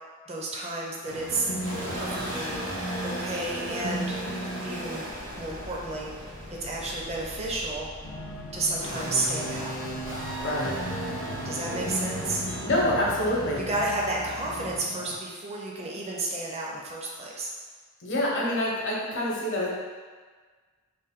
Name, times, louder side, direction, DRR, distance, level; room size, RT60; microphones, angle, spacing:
voice 1, 0.3-1.5 1.9-2.6 3.0-4.2 4.6-5.1 5.3-6.1 6.6-7.9 8.5-9.7 11.4-12.4 13.5-17.5, right 2 dB, 30° right, -3 dB, 0.6 m, -31 dB
sound 1, 1.1-14.8, right 1 dB, 65° right, 1.4 m, -37 dB
sound 2, 1.3-13.1, right 1 dB, 30° left, 0.5 m, -38 dB
sound 3, 8.0-15.2, left 2 dB, 85° left, 0.4 m, -41 dB
voice 2, 10.4-10.7 11.8-11.9 12.6-13.6 18.0-19.7, left 1 dB, 60° left, -4 dB, 0.8 m, -26 dB
3.3 x 2.6 x 3.6 m, 1.5 s
head